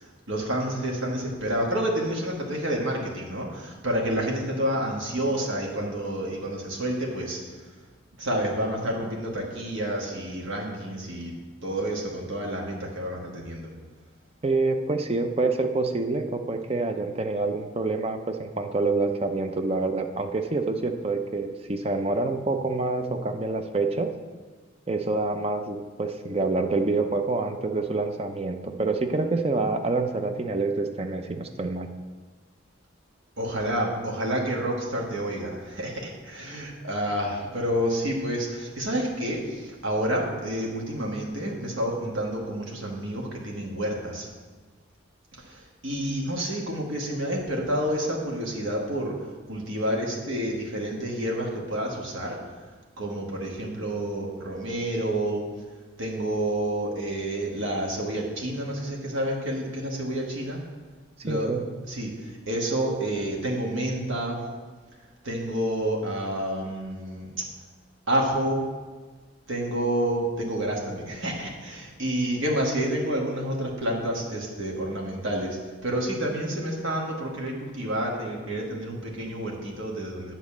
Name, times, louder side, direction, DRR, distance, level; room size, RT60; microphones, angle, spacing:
voice 1, 0.3-7.4 8.2-13.7 33.4-44.3 45.4-49.1 49.5-52.4 53.0-55.4 56.0-60.6 61.2-61.5 61.9-64.4 65.2-67.4 68.1-68.6 69.5-80.3, right 1 dB, 80° right, -1 dB, 1.5 m, -29 dB
voice 2, 14.4-24.1 24.9-31.9 61.3-61.6, right 3 dB, 30° right, 6 dB, 0.5 m, -27 dB
8.6 x 4.1 x 7.1 m, 1.4 s
head